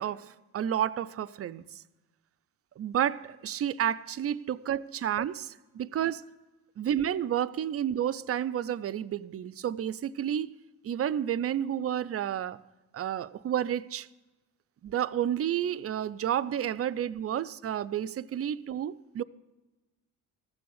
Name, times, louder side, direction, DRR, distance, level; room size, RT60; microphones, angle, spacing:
voice 1, 0.0-1.6 2.8-5.4 5.7-6.2 6.8-10.5 10.8-12.6 12.9-14.1 14.8-19.2, right 10 dB, 35° right, 0.4 m, -30 dB
14.0 x 6.9 x 6.3 m
supercardioid pair, 60°, 47 cm